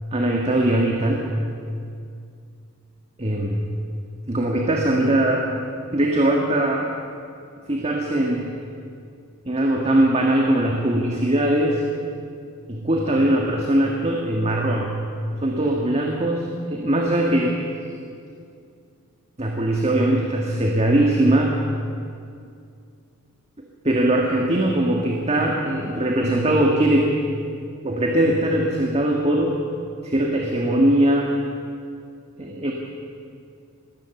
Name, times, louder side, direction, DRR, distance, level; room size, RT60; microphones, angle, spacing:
voice 1, 0.1-1.3 3.2-3.6 4.3-5.5 5.9-6.9 7.7-8.5 9.5-11.8 12.7-14.9 15.4-17.6 19.4-21.5 23.8-27.1 27.8-29.6 30.0-31.3 32.4-32.7, right 1 dB, 30° right, 0 dB, 1.7 m, -20 dB
21.5 x 17.5 x 7.1 m, 2.4 s
head